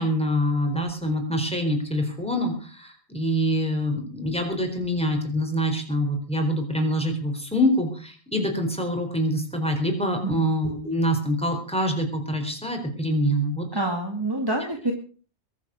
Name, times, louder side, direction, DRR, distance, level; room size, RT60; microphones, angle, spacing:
voice 1, 0.0-13.7, equal, 5° left, 3 dB, 4.4 m, -25 dB
voice 2, 13.7-14.9, right 2 dB, 20° right, 2 dB, 2.2 m, -26 dB
22.5 x 8.2 x 6.4 m, 0.40 s
omnidirectional pair, 1.2 m